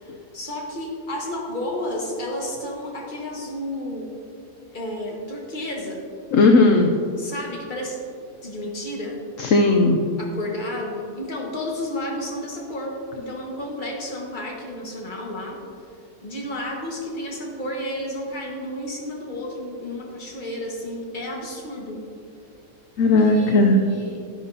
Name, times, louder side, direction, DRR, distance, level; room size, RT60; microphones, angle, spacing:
voice 1, 0.0-4.1 4.7-6.0 7.2-8.0 8.4-9.2 10.2-15.6 16.2-22.0 23.2-24.2, left 1 dB, 30° left, -1 dB, 1.5 m, -32 dB
voice 2, 6.3-7.0 9.4-10.0 23.0-23.8, left 2 dB, 65° left, 3 dB, 0.9 m, -16 dB
11.5 x 10.5 x 2.7 m, 2.4 s
omnidirectional pair, 1.7 m